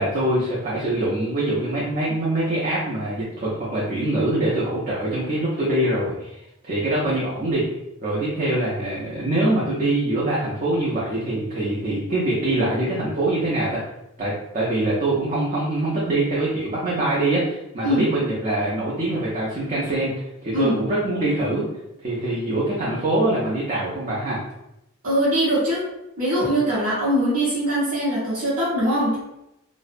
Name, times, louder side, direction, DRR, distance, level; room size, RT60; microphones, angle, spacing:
voice 1, 0.0-6.4 6.6-7.6 8.0-13.8 14.2-21.6 22.0-24.4, right 1 dB, 35° right, -7 dB, 0.5 m, -24 dB
voice 2, 25.0-25.8 26.2-29.2, equal, 70° right, -9 dB, 0.7 m, -22 dB
2.5 x 2.0 x 2.4 m, 0.87 s
head